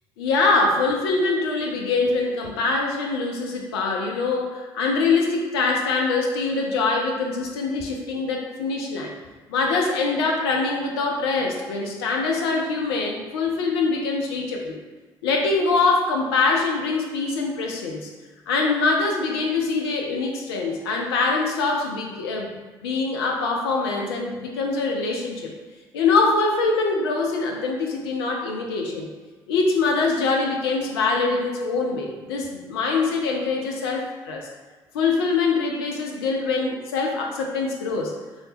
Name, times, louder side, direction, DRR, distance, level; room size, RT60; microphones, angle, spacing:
voice 1, 0.2-9.1 9.5-14.8 15.2-18.1 18.5-22.5 22.8-25.5 25.9-29.1 29.5-34.5 34.9-38.1, left 3 dB, 75° left, 0 dB, 0.5 m, -23 dB
3.2 x 3.1 x 2.8 m, 1.3 s
figure-of-eight pair, 45°, 13 cm